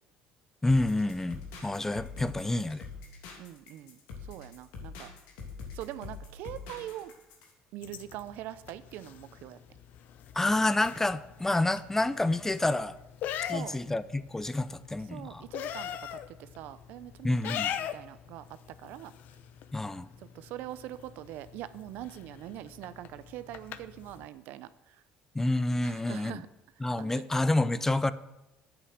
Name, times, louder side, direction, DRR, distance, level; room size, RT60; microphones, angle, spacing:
voice 1, 0.6-2.8 10.3-13.0 13.5-15.4 17.2-17.7 19.7-20.1 25.3-26.4 26.8-28.1, left 2 dB, 10° left, 15 dB, 0.6 m, -28 dB
sound 1, 0.7-7.5, left 4 dB, 90° left, 2.7 m, -45 dB
voice 2, 3.4-4.0 4.3-5.1 5.7-7.1 7.7-9.6 13.4-13.8 15.1-18.4 18.8-19.1 20.2-25.0 25.8-26.5 26.9-27.2, right 13 dB, 70° right, 14 dB, 0.7 m, -43 dB
sound 2, 7.8-24.3, left 10 dB, 65° left, 0.7 m, -42 dB
9.8 x 8.2 x 7.7 m, 0.95 s
supercardioid pair, 95°, 3 cm